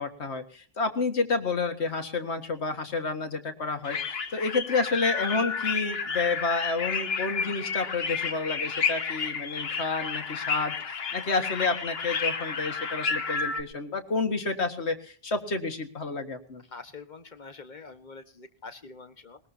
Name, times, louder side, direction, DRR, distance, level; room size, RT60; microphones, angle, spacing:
voice 1, 0.0-16.6, left 4 dB, 90° left, 7 dB, 2.0 m, -30 dB
sound 1, 3.8-13.6, left 5 dB, 70° left, 1.4 m, -31 dB
voice 2, 16.7-19.4, left 4 dB, 45° left, 9 dB, 1.5 m, -45 dB
20.5 x 20.5 x 2.8 m, 0.42 s
omnidirectional pair, 1.1 m